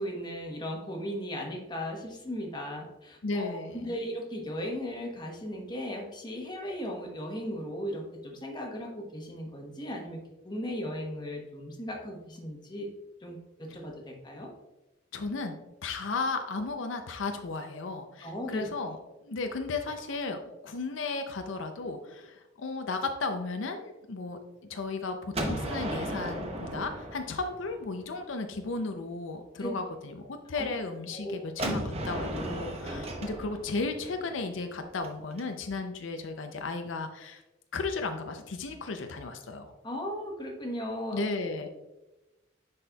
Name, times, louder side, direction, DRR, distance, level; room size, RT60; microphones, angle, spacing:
voice 1, 0.0-10.2 10.4-12.9 13.2-14.5 18.2-18.7 29.6-29.7 30.5-30.7 31.1-31.4 39.8-41.2, equal, 20° left, 1 dB, 1.0 m, -37 dB
voice 2, 3.2-3.8 15.1-15.6 15.8-19.0 19.2-24.4 24.7-37.4 37.7-39.7 41.1-41.7, left 3 dB, 80° left, 6 dB, 0.5 m, -34 dB
Gunshot gunfire, 25.3-28.2 31.6-35.4, right 1 dB, 30° right, 0.8 m, -35 dB
9.7 x 4.2 x 2.3 m, 1.0 s
head